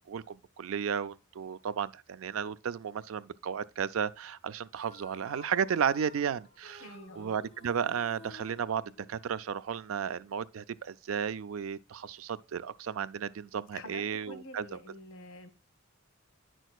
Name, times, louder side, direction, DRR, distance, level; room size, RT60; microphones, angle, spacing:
voice 1, 0.1-6.8 7.2-8.8 9.1-14.6, right 7 dB, 85° right, 0.4 m, -33 dB
sound 1, 4.7-9.6, left 2 dB, 30° left, 2.2 m, -54 dB
voice 2, 6.8-7.4 13.7-15.5, left 2 dB, 90° left, 1.1 m, -47 dB
9.0 x 6.2 x 2.3 m
head